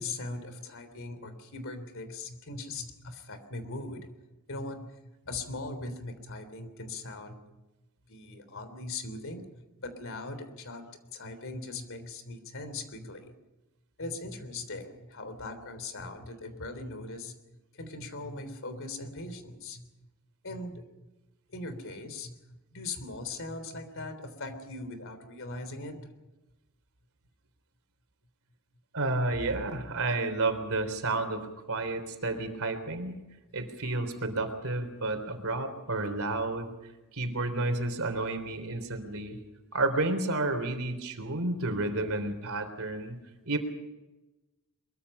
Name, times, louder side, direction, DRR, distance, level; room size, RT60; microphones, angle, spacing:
voice 1, 0.0-4.2 4.5-7.4 8.1-10.8 11.1-13.3 14.0-17.3 17.7-19.9 20.4-20.9 21.5-22.4 22.7-26.1, left 2 dB, 65° left, 10 dB, 3.5 m, -40 dB
voice 2, 28.9-33.2 33.5-36.7 37.1-39.4 39.7-43.2 43.5-43.6, right 2 dB, 70° right, 8 dB, 3.6 m, -31 dB
23.0 x 23.0 x 5.6 m, 1.1 s
head